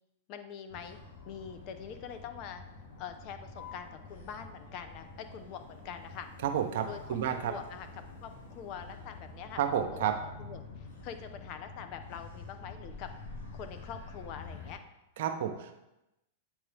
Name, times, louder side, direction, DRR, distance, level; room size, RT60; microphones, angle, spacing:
voice 1, 0.3-1.0 1.2-2.6 3.0-6.3 6.8-7.9 8.2-13.1 13.5-14.8, left 8 dB, 45° left, 8 dB, 0.6 m, -44 dB
Motor vehicle (road), 0.7-14.7, left 3 dB, 75° left, 1.5 m, -48 dB
voice 2, 6.4-7.5 9.6-10.1 15.2-15.8, right 9 dB, 65° right, 6 dB, 0.7 m, -31 dB
8.3 x 3.6 x 3.4 m, 0.93 s
hypercardioid pair, 120°, 0 cm